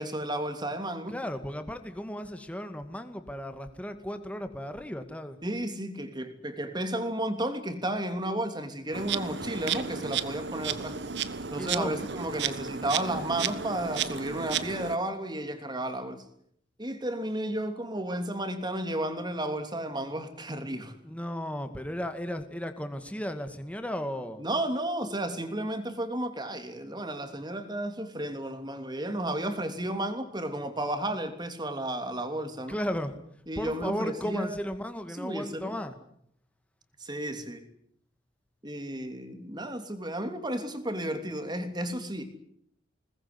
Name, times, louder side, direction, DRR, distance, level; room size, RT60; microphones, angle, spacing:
voice 1, 0.0-1.1 5.4-11.0 11.5-16.2 16.8-20.9 24.4-32.8 33.5-34.6 35.2-35.7 37.0-37.7 38.6-42.2, right 1 dB, 25° right, 7 dB, 3.1 m, -33 dB
voice 2, 1.1-5.4 11.5-12.1 21.0-24.4 32.7-33.1 33.6-36.0, equal, 5° left, 8 dB, 2.1 m, -35 dB
Insect, 8.9-15.0, right 7 dB, 65° right, 1.3 m, -33 dB
22.0 x 20.0 x 9.8 m, 0.69 s
head